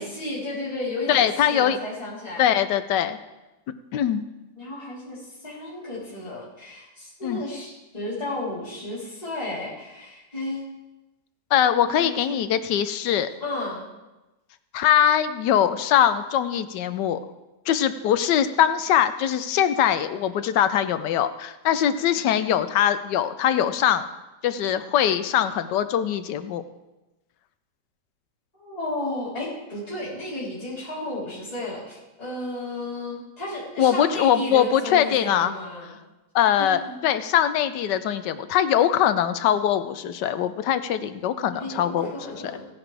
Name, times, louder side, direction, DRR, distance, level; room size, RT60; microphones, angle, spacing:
voice 1, 0.0-2.5 4.6-10.7 11.8-12.4 13.4-13.8 28.6-35.9 36.6-37.0 41.6-42.7, left 2 dB, 20° left, -9 dB, 3.8 m, -33 dB
voice 2, 1.1-1.8 2.4-3.2 3.9-4.2 7.2-7.4 11.5-13.3 14.7-17.2 17.7-24.1 24.4-26.6 33.8-35.5 36.3-42.1, left 10 dB, 80° left, 12 dB, 1.3 m, -22 dB
17.0 x 9.9 x 3.4 m, 1.0 s
omnidirectional pair, 1.9 m